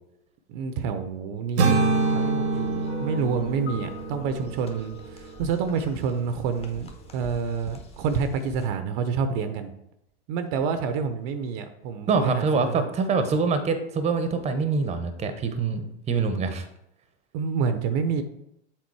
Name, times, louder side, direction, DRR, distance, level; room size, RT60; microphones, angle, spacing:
voice 1, 0.5-9.7 10.3-12.9 17.3-18.2, right 6 dB, 50° right, 9 dB, 0.7 m, -28 dB
sound 1, 1.6-5.6, right 4 dB, 90° right, 1.2 m, -26 dB
sound 2, 2.0-6.4, left 4 dB, 90° left, 2.2 m, -43 dB
sound 3, 2.0-8.7, equal, 20° left, 1.0 m, -46 dB
voice 2, 12.1-15.8 16.1-16.7, right 4 dB, 20° right, 9 dB, 0.8 m, -25 dB
7.5 x 3.7 x 4.7 m, 0.81 s
hypercardioid pair, 115°, 33 cm